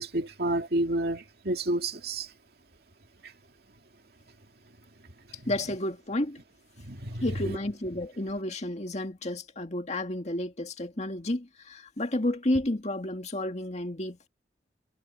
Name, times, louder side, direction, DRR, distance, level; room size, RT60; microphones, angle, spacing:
voice 1, 0.0-2.3 6.8-7.2, right 1 dB, 60° right, 2.4 m, -29 dB
voice 2, 5.5-6.4 7.2-14.3, left 1 dB, 40° left, 2.1 m, -31 dB
head